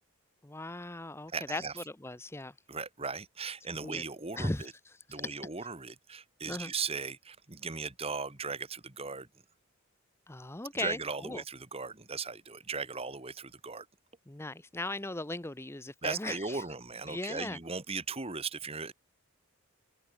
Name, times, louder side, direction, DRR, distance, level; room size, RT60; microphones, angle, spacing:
voice 1, 0.4-2.5 3.8-4.0 4.3-5.7 6.5-6.7 10.3-11.4 14.3-16.6 17.1-17.6, left 2 dB, 10° left, 0.7 m, -38 dB
voice 2, 1.3-1.7 2.7-4.7 5.1-9.3 10.7-13.9 16.0-18.9, right 4 dB, 25° right, 1.8 m, -38 dB
open air
head